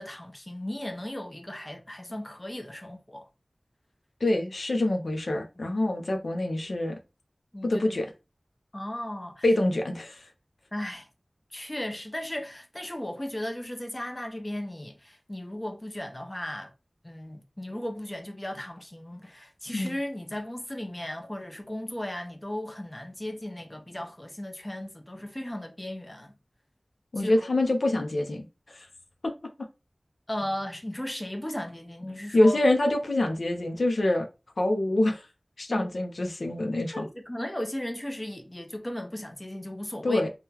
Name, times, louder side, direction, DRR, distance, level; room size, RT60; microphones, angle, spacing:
voice 1, 0.0-3.3 5.6-5.7 7.5-8.0 8.7-9.4 10.7-11.1 11.5-16.7 17.0-26.3 27.2-27.5 30.3-32.6 35.7-35.9 36.9-40.2, left 1 dB, 25° left, 0.7 m, -36 dB
voice 2, 4.2-7.0 7.6-8.1 9.4-10.2 19.7-19.9 27.1-28.5 28.7-28.9 29.2-29.3 32.3-34.3 34.6-35.3 35.6-37.0 40.0-40.3, left 1 dB, 85° left, 0.6 m, -25 dB
3.6 x 2.2 x 2.8 m
wide cardioid pair, 40°, 0 cm